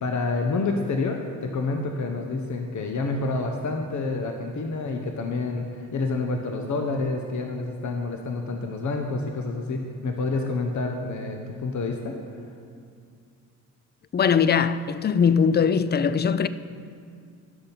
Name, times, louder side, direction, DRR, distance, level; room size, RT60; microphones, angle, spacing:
voice 1, 0.0-12.2, left 3 dB, 45° left, 1.1 m, -28 dB
voice 2, 14.1-16.5, left 6 dB, 25° left, 0.4 m, -21 dB
11.0 x 6.5 x 5.7 m
hypercardioid pair, 45°, 40 cm